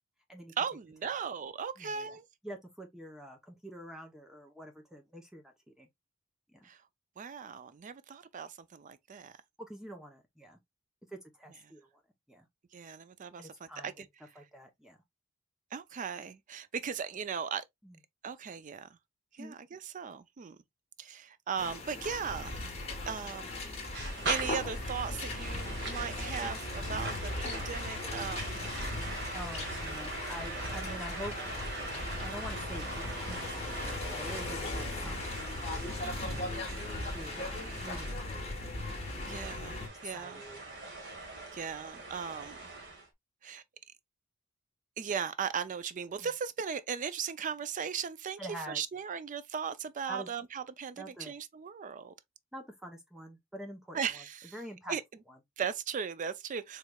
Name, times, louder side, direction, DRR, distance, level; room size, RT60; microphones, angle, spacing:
voice 1, 0.6-2.2 6.6-6.8 7.2-9.3 12.7-14.1 15.7-17.6 18.2-18.9 19.3-20.6 21.0-22.6 23.1-23.5 24.3-28.6 28.9-29.1 36.0-36.5 39.2-40.4 41.5-42.6 43.4-43.6 45.0-48.4 48.7-52.1 53.9-54.5 54.9-55.0 55.6-56.8, right 7 dB, 40° right, 0.4 m, -37 dB
voice 2, 1.8-2.2 2.4-5.9 6.5-6.7 9.6-10.6 11.1-11.9 12.3-12.5 13.4-14.1 14.4-15.0 17.8-18.0 19.4-19.6 29.3-31.3 32.2-35.3 35.7-36.1 37.1-38.6 40.0-40.6 46.2-46.3 48.4-48.8 50.1-50.3 51.0-51.3 52.5-55.0 55.3-55.4, equal, 5° right, 0.7 m, -46 dB
sound 1, 21.6-39.9, left 2 dB, 30° left, 1.3 m, -38 dB
sound 2, 23.9-43.1, right 3 dB, 60° right, 1.4 m, -42 dB
4.6 x 3.2 x 2.3 m
head